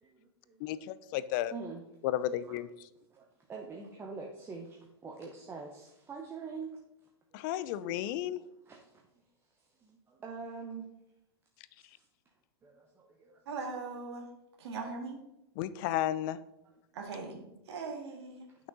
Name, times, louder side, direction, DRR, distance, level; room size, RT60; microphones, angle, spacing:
voice 1, 0.0-0.9 1.5-1.8 2.4-2.5 3.1-6.8 7.3-7.4 7.7-8.2 8.7-9.0 9.6-10.9 11.8-12.1 12.6-13.4, right 4 dB, 15° right, 1 dB, 0.9 m, -45 dB
voice 2, 0.6-1.5 2.0-2.7 7.3-8.4 15.6-16.4, left 12 dB, 50° left, 16 dB, 0.5 m, -33 dB
voice 3, 13.5-14.3 14.6-15.2 16.9-18.5, right 4 dB, 75° right, 2 dB, 2.0 m, -40 dB
8.2 x 6.2 x 3.9 m, 0.91 s
hypercardioid pair, 135°, 14 cm